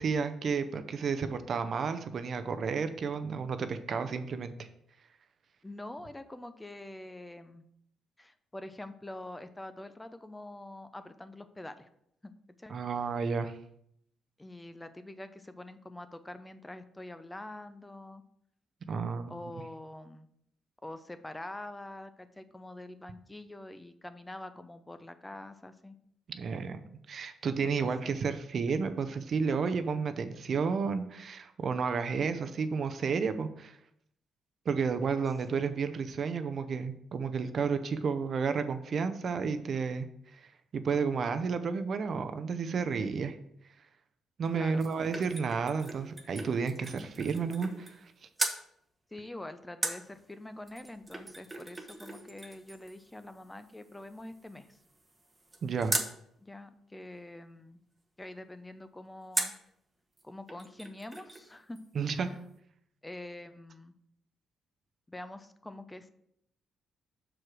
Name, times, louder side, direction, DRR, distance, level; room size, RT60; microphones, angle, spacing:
voice 1, 0.0-4.7 12.7-13.5 18.9-19.3 26.3-33.8 34.7-40.1 40.3-43.4 44.4-48.1 55.6-55.9 61.9-62.3, right 5 dB, 50° right, 9 dB, 0.6 m, -32 dB
voice 2, 5.6-7.7 8.2-11.9 12.2-12.3 12.6-12.8 14.4-18.2 19.3-20.3 20.8-25.9 27.6-28.3 44.5-44.8 49.1-54.8 56.4-57.8 58.2-59.5 60.2-61.8 62.2-62.4 63.0-63.9 65.1-66.1, left 1 dB, 15° left, 11 dB, 0.5 m, -45 dB
sound 1, 44.5-48.1 48.4-48.6 49.8-56.2 59.3-59.7 60.2-60.3 60.5-61.5 61.8-61.9, right 2 dB, 15° right, 1.0 m, -39 dB
6.2 x 4.8 x 4.8 m, 0.72 s
cardioid pair, 90°, 0 cm